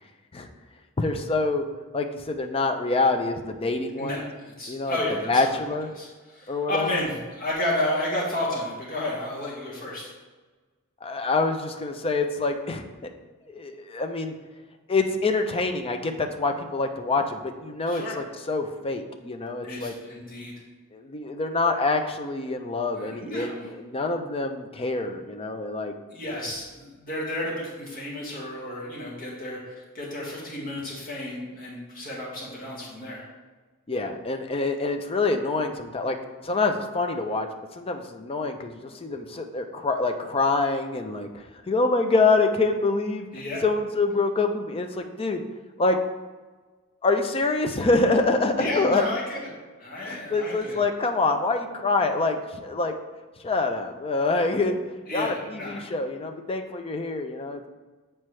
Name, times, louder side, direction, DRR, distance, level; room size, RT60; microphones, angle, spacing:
voice 1, 1.0-1.7 1.9-4.2 4.7-5.0 5.3-5.9 6.5-7.0 11.0-13.1 13.5-14.3 14.9-19.9 20.9-25.9 33.9-36.2 36.4-37.5 37.7-41.3 41.7-45.4 45.8-46.0 47.0-49.0 50.0-52.9 53.4-54.8 55.1-57.7, left 3 dB, 25° left, 5 dB, 0.5 m, -26 dB
voice 2, 4.0-5.6 5.9-10.1 17.9-18.2 19.6-20.5 22.9-23.5 26.1-33.2 43.3-43.6 48.6-49.5 49.8-50.8 55.1-55.8, left 1 dB, 40° left, -5 dB, 1.8 m, -32 dB
7.5 x 4.5 x 3.2 m, 1.3 s
head